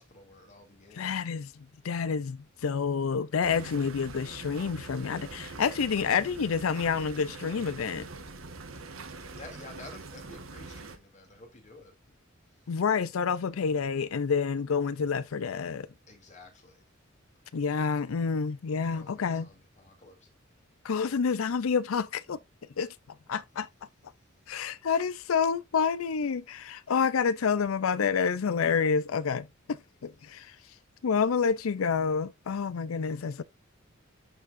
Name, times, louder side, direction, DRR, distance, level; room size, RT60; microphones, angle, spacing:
voice 1, 0.0-1.2 9.3-11.9 12.5-12.7 16.1-16.9 18.8-20.3 30.2-30.8, left 2 dB, 35° left, 2.7 m, -51 dB
voice 2, 1.0-1.5 1.8-8.1 12.7-15.9 17.5-19.5 20.8-22.4 22.8-22.9 23.3-23.7 24.5-30.5 31.0-33.4, left 6 dB, 85° left, 0.5 m, -28 dB
sound 1, 3.4-11.0, right 3 dB, 80° right, 1.4 m, -44 dB
11.0 x 4.6 x 2.5 m
head